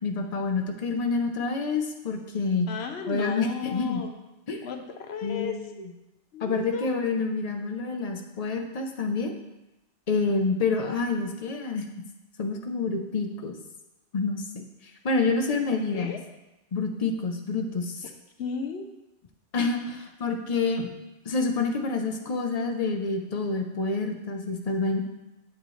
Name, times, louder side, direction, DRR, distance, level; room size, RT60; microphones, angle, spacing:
voice 1, 0.0-2.7 3.1-4.0 4.5-4.6 5.2-5.6 6.4-9.3 10.1-11.9 12.4-13.5 14.1-14.4 14.8-16.2 16.7-18.0 19.5-20.9 21.2-25.0, left 3 dB, 40° left, 4 dB, 0.7 m, -28 dB
voice 2, 2.7-4.1 4.6-5.6 6.3-6.9 15.5-15.6 15.9-16.2 18.4-18.9, left 6 dB, 65° left, 5 dB, 0.9 m, -34 dB
8.3 x 6.5 x 3.2 m, 0.97 s
omnidirectional pair, 1.2 m